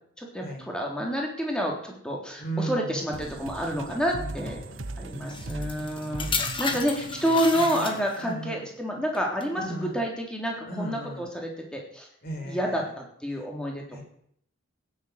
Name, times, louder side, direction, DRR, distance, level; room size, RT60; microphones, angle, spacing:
voice 1, 0.2-4.6 5.0-12.1 12.4-14.0, equal, 5° left, -1 dB, 3.5 m, -29 dB
voice 2, 2.4-3.4 3.9-4.2 4.6-6.1 6.7-6.8 7.5-7.8 8.2-8.6 9.5-10.0 10.7-11.3 12.2-12.8 13.9-14.0, right 2 dB, 45° left, 1 dB, 5.2 m, -37 dB
sound 1, 3.1-8.4, right 2 dB, 70° right, 1.0 m, -39 dB
sound 2, 5.3-8.4 9.1-9.4, left 5 dB, 25° left, 1.7 m, -32 dB
16.5 x 10.0 x 8.2 m, 0.68 s
head